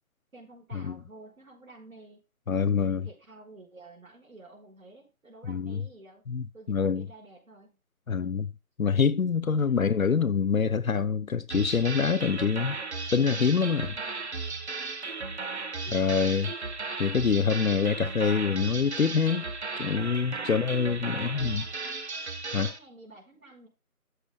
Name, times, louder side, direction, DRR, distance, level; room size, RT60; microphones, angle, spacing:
voice 1, 0.3-2.2 2.6-6.2 6.5-7.7 8.1-8.3 9.6-9.8 13.8-14.3 15.0-15.3 20.4-20.7 21.1-21.8 22.6-23.7, right 2 dB, 65° right, 4.9 m, -51 dB
voice 2, 2.5-3.1 5.5-5.8 6.3-7.1 8.1-8.5 8.8-12.8 13.1-13.9 15.9-16.5 17.0-19.4 19.8-21.6 22.5-22.7, left 6 dB, 65° left, 0.8 m, -25 dB
sound 1, 11.5-22.8, right 4 dB, 50° right, 1.2 m, -35 dB
12.5 x 8.0 x 2.2 m
figure-of-eight pair, 165°, 44 cm